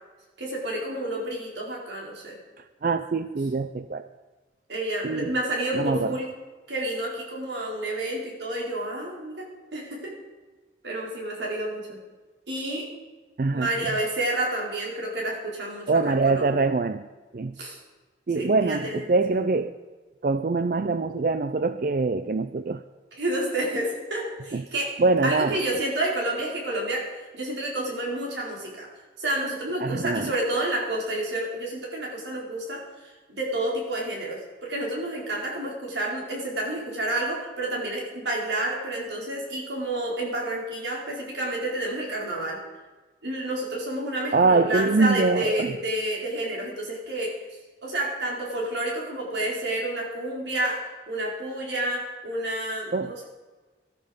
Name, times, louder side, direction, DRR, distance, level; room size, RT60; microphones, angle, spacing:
voice 1, 0.4-2.4 4.7-6.3 6.7-9.5 9.7-10.2 10.8-12.0 12.5-12.9 13.5-16.6 17.6-17.8 18.3-19.5 23.1-24.9 25.2-28.9 29.2-42.6 43.2-47.4 47.8-53.2, right 1 dB, 90° right, -2 dB, 4.5 m, -30 dB
voice 2, 2.8-4.0 5.0-5.3 5.7-6.1 13.4-13.7 15.9-17.1 17.3-17.6 18.3-19.7 20.2-22.8 24.5-24.6 25.0-25.6 29.8-30.3 44.3-45.7 52.9-53.1, right 3 dB, 50° right, 11 dB, 0.4 m, -24 dB
19.0 x 13.0 x 5.2 m, 1.3 s
head